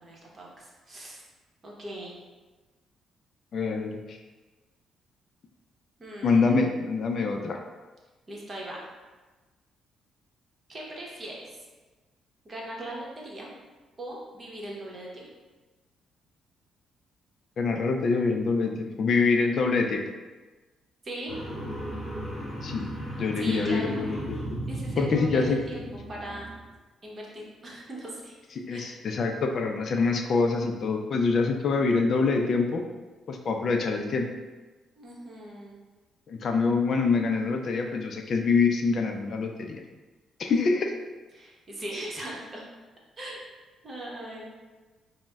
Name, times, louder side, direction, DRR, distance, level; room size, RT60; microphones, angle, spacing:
voice 1, 0.0-1.2 1.6-2.1 6.0-6.7 8.3-8.8 10.7-11.6 12.4-13.5 14.0-15.3 21.0-21.3 23.4-24.1 24.7-26.5 27.0-28.3 28.7-29.0 35.0-35.7 40.4-40.5 41.3-42.7 43.2-43.4 43.8-44.5, right 1 dB, 35° right, -3 dB, 0.9 m, -39 dB
voice 2, 3.5-4.2 6.2-7.6 17.6-20.0 22.6-22.9 23.2-24.4 25.0-25.6 28.6-32.8 33.3-34.3 36.3-39.8 40.4-40.9, left 4 dB, 55° left, 3 dB, 0.3 m, -25 dB
sound 1, 21.3-26.6, equal, 20° left, 0.9 m, -35 dB
4.9 x 2.0 x 2.2 m, 1.3 s
cardioid pair, 90°, 0 cm